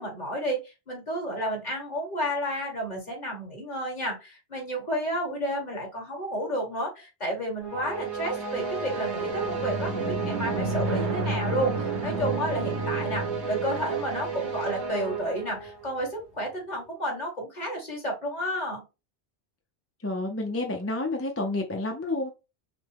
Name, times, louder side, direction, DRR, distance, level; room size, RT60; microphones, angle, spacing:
voice 1, 0.0-18.8, equal, 40° left, 1.8 m, -31 dB
sound 1, 7.6-16.0, right 4 dB, 85° right, 1.5 m, -30 dB
voice 2, 20.0-22.3, left 2 dB, 15° left, 0.5 m, -29 dB
5.9 x 2.2 x 3.4 m
omnidirectional pair, 1.1 m